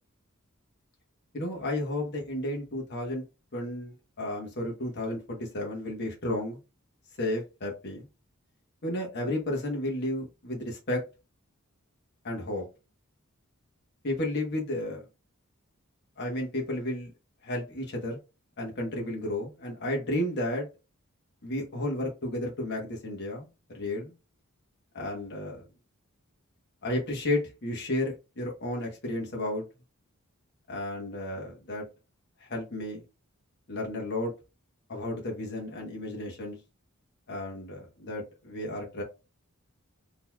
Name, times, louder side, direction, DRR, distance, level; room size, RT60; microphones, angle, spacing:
voice 1, 1.3-3.2 3.5-6.6 7.2-8.0 8.8-11.0 12.2-12.6 14.0-15.0 16.2-17.1 17.4-18.2 18.6-20.7 21.4-23.5 23.7-24.1 24.9-25.7 26.8-29.6 30.7-31.9 32.4-33.0 33.7-34.3 34.9-36.6 37.3-39.0, left 1 dB, 50° left, 1.2 m, -32 dB
3.9 x 2.9 x 2.4 m
head